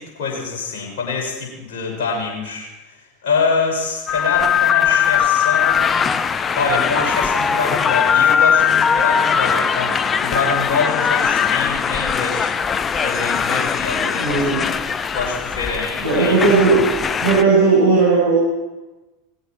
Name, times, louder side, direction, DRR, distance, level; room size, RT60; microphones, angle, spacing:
voice 1, 0.0-2.7 3.2-6.0 6.5-12.5 13.0-14.5 15.1-16.8, left 4 dB, 55° left, -1 dB, 6.2 m, -25 dB
sound 1, 4.1-17.4, left 7 dB, 25° left, 0.7 m, -20 dB
voice 2, 14.2-14.6 16.0-16.8 17.2-18.4, right 4 dB, 70° right, -8 dB, 8.0 m, -15 dB
19.0 x 16.0 x 4.6 m, 1.1 s
figure-of-eight pair, 80°, 0 cm